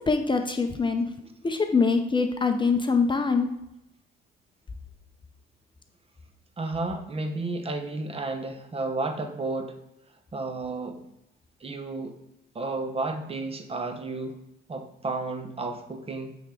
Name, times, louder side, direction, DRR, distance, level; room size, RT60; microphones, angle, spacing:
voice 1, 0.1-1.1 1.4-3.5, left 4 dB, 25° left, 6 dB, 0.5 m, -24 dB
voice 2, 6.6-9.7 10.3-11.0 11.6-12.2 12.5-14.4 14.7-16.4, right 3 dB, 30° right, 6 dB, 0.8 m, -32 dB
8.9 x 3.5 x 3.7 m, 0.83 s
cardioid pair, 90°, 20 cm